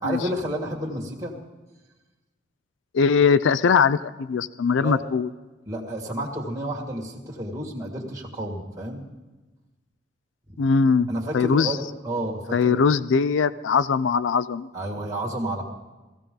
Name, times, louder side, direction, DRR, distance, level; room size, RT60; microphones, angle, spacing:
voice 1, 0.0-1.3 4.8-5.1 5.7-9.0 11.1-12.9 14.7-15.6, right 1 dB, 15° right, -4 dB, 2.0 m, -30 dB
voice 2, 2.9-5.3 10.6-11.1 11.3-11.7 12.5-14.7, left 5 dB, 85° left, 16 dB, 0.4 m, -21 dB
16.0 x 15.5 x 3.8 m, 1.1 s
head